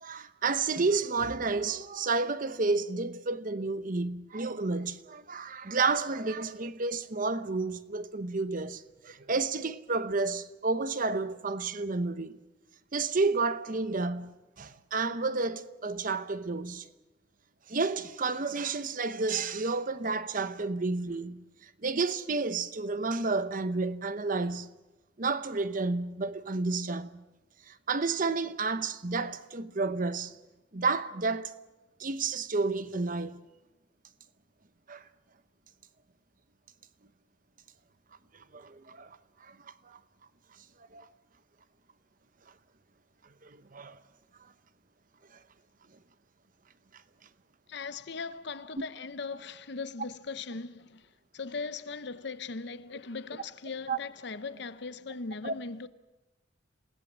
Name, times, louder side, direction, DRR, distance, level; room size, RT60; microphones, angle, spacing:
voice 1, 0.0-12.4 12.9-16.8 17.7-21.4 21.8-24.7 25.2-27.2 27.7-30.4 30.7-31.5 32.0-33.4 34.9-35.0 38.5-40.0 40.9-41.1 43.4-44.0 53.9-54.0 55.4-55.5, right 3 dB, 45° right, 0.8 m, -31 dB
voice 2, 47.7-55.9, left 4 dB, 60° left, 0.8 m, -39 dB
27.5 x 17.5 x 7.4 m
head